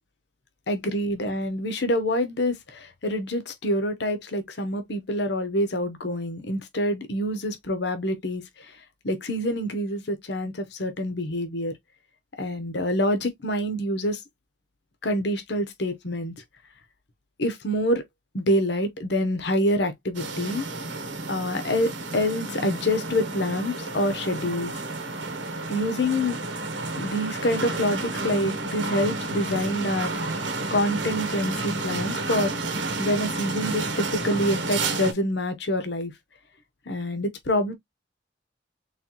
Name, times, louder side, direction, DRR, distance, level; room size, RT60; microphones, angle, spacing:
voice 1, 0.7-8.4 9.0-11.7 12.4-14.2 15.0-16.3 17.4-18.0 18.3-20.6 21.3-24.7 25.7-26.4 27.0-30.1 30.7-32.5 33.0-33.9 34.1-36.1 36.9-37.7, left 1 dB, 60° left, 1.0 m, -26 dB
sound 1, 20.1-35.1, right 3 dB, 85° right, 1.1 m, -31 dB
4.1 x 3.2 x 3.0 m
head